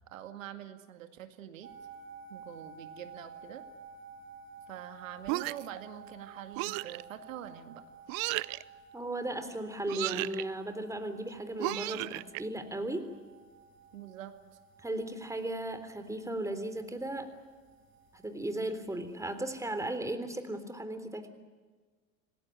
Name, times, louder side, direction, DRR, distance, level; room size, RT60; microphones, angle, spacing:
voice 1, 0.1-1.7 2.3-3.6 4.7-7.8 13.9-14.3, right 11 dB, 75° right, 8 dB, 2.2 m, -45 dB
sound 1, 1.6-19.9, right 4 dB, 30° right, 6.2 m, -54 dB
sound 2, 5.3-5.8 6.6-7.0 8.1-8.6 9.9-10.4 11.6-12.4, right 22 dB, 50° right, 0.7 m, -34 dB
voice 2, 8.9-13.1 14.8-17.3 18.1-21.3, right 1 dB, 10° right, 9 dB, 3.5 m, -36 dB
27.5 x 19.0 x 9.3 m, 1.4 s
hypercardioid pair, 80°, 40 cm